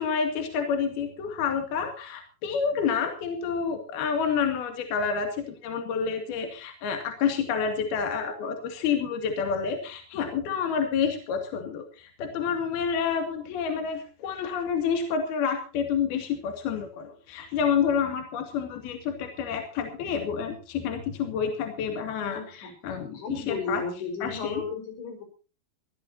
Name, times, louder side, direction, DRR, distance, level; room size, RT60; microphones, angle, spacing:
voice 1, 0.0-23.8 24.2-24.6, left 6 dB, 65° left, 6 dB, 4.1 m, -29 dB
voice 2, 22.3-22.7 23.1-25.2, left 4 dB, 85° left, 6 dB, 7.1 m, -34 dB
22.5 x 17.0 x 2.7 m, 0.34 s
omnidirectional pair, 5.0 m